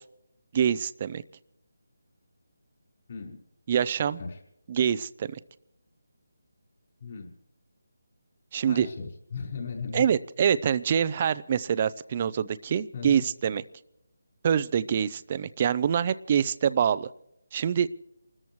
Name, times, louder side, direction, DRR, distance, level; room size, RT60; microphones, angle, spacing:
voice 1, 0.5-1.2 3.7-4.2 4.7-5.4 8.5-8.9 9.9-13.6 14.4-17.1 17.5-17.9, right 8 dB, 30° right, 16 dB, 0.5 m, -25 dB
voice 2, 7.0-7.3 8.7-10.1 12.9-13.2, left 5 dB, 40° left, 0 dB, 5.3 m, -37 dB
29.5 x 13.5 x 3.2 m, 0.81 s
figure-of-eight pair, 170°, 0 cm